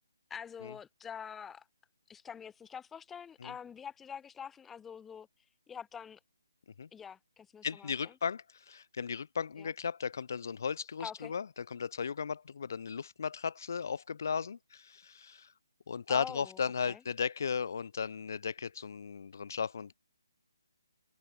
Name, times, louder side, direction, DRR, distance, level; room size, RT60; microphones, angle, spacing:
voice 1, 0.3-1.6 2.1-5.3 5.7-6.2 6.9-8.1 9.6-9.7 11.0-11.3 16.1-17.0, left 7 dB, 5° left, 1.0 m, -45 dB
voice 2, 7.6-15.5 15.9-19.9, left 6 dB, 50° left, 0.6 m, -36 dB
hypercardioid pair, 170°, 2 cm